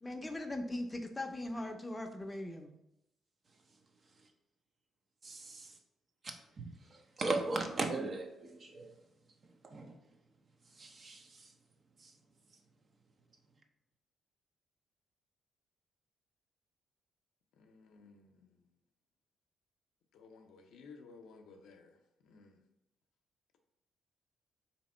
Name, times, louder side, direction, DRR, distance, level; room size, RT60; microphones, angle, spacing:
voice 1, 0.0-2.7, left 1 dB, 15° left, 0.6 m, -40 dB
voice 2, 5.2-5.7 6.2-6.6 7.2-8.9 9.6-9.9 10.8-11.2, right 3 dB, 40° right, 0.6 m, -37 dB
voice 3, 17.6-18.6 20.1-22.0 22.2-22.6, left 4 dB, 80° left, 0.6 m, -56 dB
3.4 x 2.9 x 4.2 m
cardioid pair, 85°, 0 cm